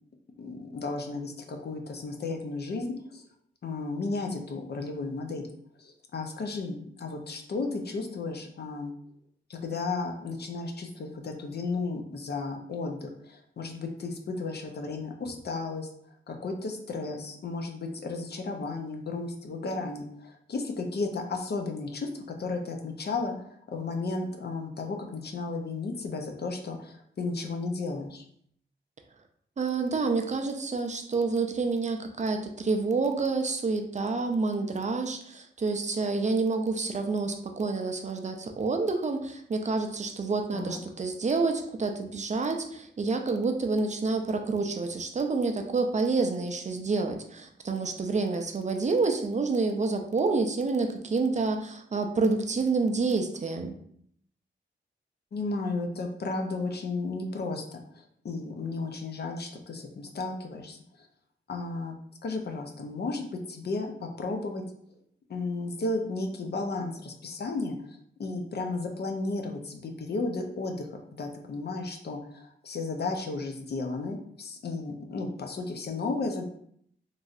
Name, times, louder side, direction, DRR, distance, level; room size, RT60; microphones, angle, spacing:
voice 1, 0.4-2.9 3.1-3.2 3.6-5.5 5.8-8.9 9.5-15.9 16.3-28.2 40.5-40.8 55.3-60.8 61.5-62.0 62.2-64.6 65.3-70.9 71.2-76.4, left 3 dB, 55° left, 3 dB, 0.5 m, -34 dB
voice 2, 29.6-53.7, right 3 dB, 40° right, 4 dB, 0.4 m, -28 dB
3.0 x 2.6 x 2.4 m, 0.67 s
wide cardioid pair, 80°, 20 cm